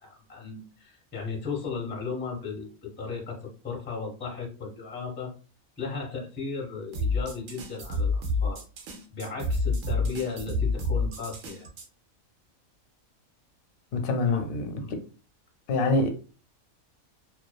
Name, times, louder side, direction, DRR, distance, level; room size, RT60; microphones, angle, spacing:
voice 1, 0.0-5.3 5.8-8.6 9.1-11.7 14.2-14.5 14.8-14.9, left 5 dB, 10° left, 0.5 m, -36 dB
sound 1, 6.9-11.9, left 3 dB, 70° right, 1.0 m, -28 dB
voice 2, 13.9-15.0 15.7-16.1, left 2 dB, 85° left, 1.0 m, -26 dB
2.5 x 2.3 x 2.2 m
omnidirectional pair, 1.4 m